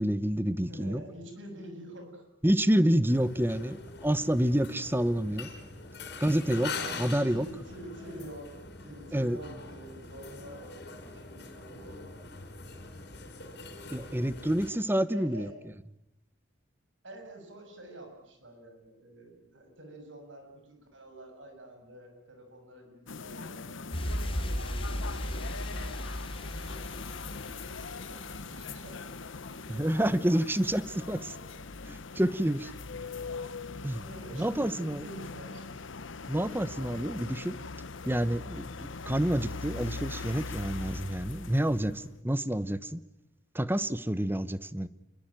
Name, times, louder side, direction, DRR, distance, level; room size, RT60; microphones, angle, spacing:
voice 1, 0.0-1.0 2.4-5.5 6.2-7.5 9.1-9.4 13.9-15.5 29.7-31.2 31.9-32.7 33.8-34.0 34.3-35.0 36.3-37.6 38.0-43.0 43.5-44.9, right 1 dB, 10° right, 15 dB, 1.0 m, -28 dB
voice 2, 0.6-2.2 7.0-12.1 15.1-15.6 17.0-30.6 31.2-31.5 32.6-33.1 33.9-35.8, right 1 dB, 75° right, 4 dB, 7.9 m, -48 dB
sound 1, 3.1-14.7, left 3 dB, 55° left, 5.2 m, -43 dB
sound 2, 23.1-42.1, left 4 dB, 75° left, 1.0 m, -41 dB
sound 3, 23.9-30.4 30.7-30.8, equal, 30° left, 3.5 m, -37 dB
28.0 x 23.0 x 9.1 m, 0.88 s
head